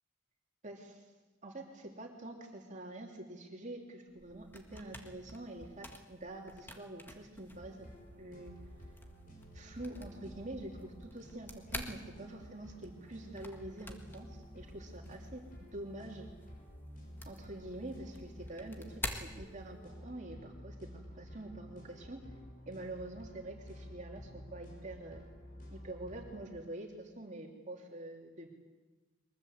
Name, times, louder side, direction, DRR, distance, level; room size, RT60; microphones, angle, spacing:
voice 1, 0.6-1.1 1.4-7.9 8.2-8.6 9.5-16.3 17.2-22.2 22.7-25.2 25.7-28.5, right 1 dB, 35° right, 1 dB, 3.0 m, -46 dB
sound 1, 4.1-20.1, left 1 dB, 10° left, 1.7 m, -49 dB
sound 2, 7.5-26.4, equal, 40° left, 6.2 m, -52 dB
23.0 x 21.0 x 8.0 m, 1.2 s
head